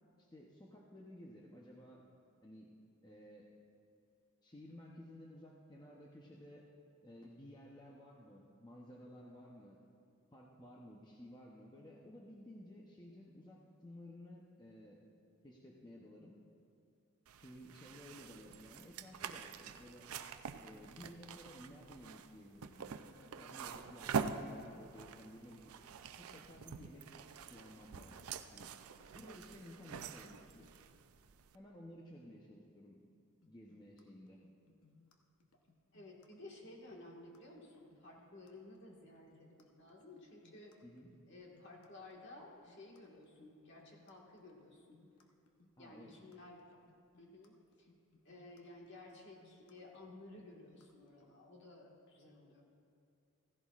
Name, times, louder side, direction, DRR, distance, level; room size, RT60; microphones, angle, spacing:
voice 1, 0.2-2.0 2.4-2.7 3.0-3.5 4.4-6.7 7.0-9.8 10.3-15.0 15.4-16.4 17.3-20.1 20.6-25.7 26.2-28.3 28.5-28.7 29.1-30.7 31.5-33.0 33.5-34.4 40.8-41.1 45.8-46.1, left 1 dB, 20° left, -3 dB, 0.7 m, -55 dB
sound 1, 17.3-31.6, right 6 dB, 75° right, 0.5 m, -45 dB
sound 2, 33.4-51.3, left 3 dB, 75° left, 0.9 m, -68 dB
voice 2, 35.9-40.7 41.3-45.0 45.8-46.7 47.2-47.9 48.2-52.6, left 2 dB, 50° left, -1 dB, 1.7 m, -55 dB
15.5 x 15.0 x 2.4 m, 2.5 s
head